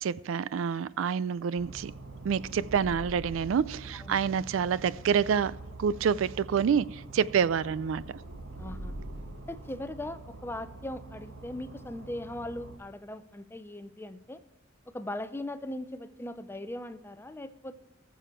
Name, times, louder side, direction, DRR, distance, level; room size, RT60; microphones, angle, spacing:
voice 1, 0.0-1.9 2.2-8.0, right 7 dB, 70° right, 0.4 m, -27 dB
sound 1, 1.6-12.8, right 2 dB, 90° right, 1.6 m, -44 dB
voice 2, 8.6-9.0 9.5-14.4 14.9-17.8, left 1 dB, 10° left, 0.6 m, -39 dB
19.0 x 7.0 x 4.4 m
head